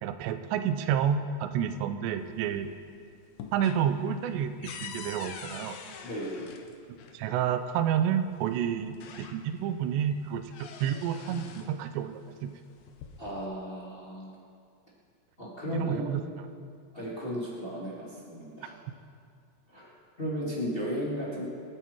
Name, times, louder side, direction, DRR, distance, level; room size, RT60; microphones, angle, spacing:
voice 1, 0.0-2.7 3.5-5.8 7.1-12.5 15.7-16.2, right 9 dB, 90° right, 9 dB, 2.9 m, -30 dB
sound 1, 2.2-2.9 3.2-7.2 8.3-8.4 8.8-9.7 10.1-11.8 12.7-13.5, left 6 dB, 70° left, 2.3 m, -45 dB
voice 2, 6.0-6.5 13.2-14.3 15.4-16.1 16.9-18.7 19.7-19.9 20.2-21.4, equal, 15° left, -6 dB, 2.0 m, -35 dB
26.0 x 9.2 x 4.6 m, 2.3 s
omnidirectional pair, 4.9 m